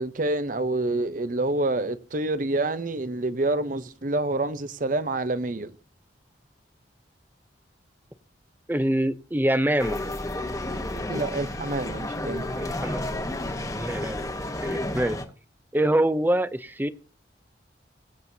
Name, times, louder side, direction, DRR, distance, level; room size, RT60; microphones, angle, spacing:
voice 1, 0.0-5.7 11.1-12.5, right 2 dB, 45° right, 0.7 m, -27 dB
voice 2, 8.7-10.0 12.5-13.0 13.3-13.4 13.7-14.2 14.6-15.2 15.7-16.9, right 1 dB, 10° right, 0.5 m, -25 dB
sound 1, 9.8-15.2, left 1 dB, 20° left, 1.0 m, -31 dB
21.5 x 7.6 x 2.7 m
head